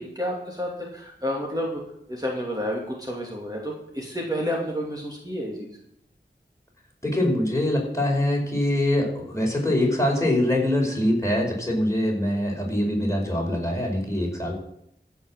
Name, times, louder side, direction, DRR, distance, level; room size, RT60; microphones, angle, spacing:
voice 1, 0.0-1.8 2.1-5.7, equal, 20° right, -2 dB, 2.5 m, -30 dB
voice 2, 7.0-14.5, left 1 dB, 15° left, -1 dB, 4.7 m, -24 dB
15.0 x 5.8 x 7.3 m, 0.76 s
wide cardioid pair, 40°, 19 cm